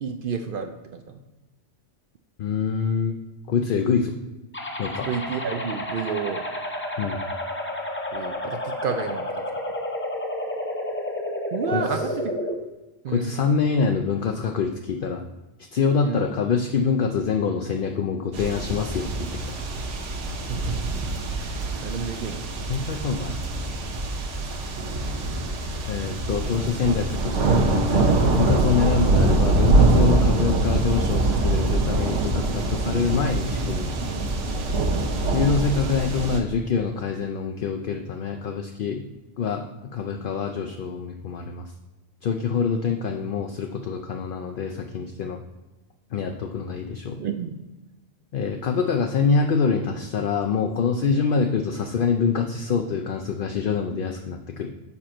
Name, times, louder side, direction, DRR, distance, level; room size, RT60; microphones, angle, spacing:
voice 1, 0.0-1.2 5.0-6.4 8.1-9.3 11.5-12.3 13.0-13.4 16.0-16.3 20.4-21.0 21.4-22.5 47.2-47.6, right 6 dB, 60° right, 6 dB, 0.6 m, -31 dB
voice 2, 2.4-3.2 3.5-4.2 4.8-5.1 7.0-7.2 11.7-12.0 13.1-15.2 15.7-19.6 22.7-23.3 25.9-33.9 35.3-39.0 39.4-41.7 42.2-45.4 46.1-47.2 48.3-54.7, left 5 dB, 60° left, 4 dB, 0.6 m, -25 dB
sound 1, 4.5-12.5, left 1 dB, 15° left, 0.6 m, -30 dB
sound 2, 18.3-36.4, right 2 dB, 80° right, 1.2 m, -24 dB
7.0 x 5.1 x 4.3 m, 1.1 s
omnidirectional pair, 1.2 m